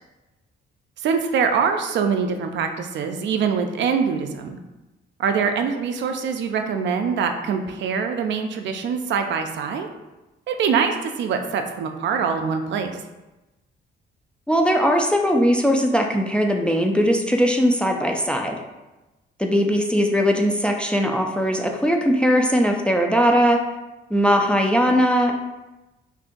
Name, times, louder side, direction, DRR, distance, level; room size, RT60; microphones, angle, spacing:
voice 1, 1.0-4.6 5.2-9.9 10.5-13.0, right 6 dB, 65° right, 5 dB, 0.4 m, -24 dB
voice 2, 14.5-18.6 19.4-23.6 24.1-25.4, equal, 5° left, 2 dB, 0.3 m, -19 dB
2.6 x 2.4 x 3.7 m, 1.1 s
cardioid pair, 90°, 20 cm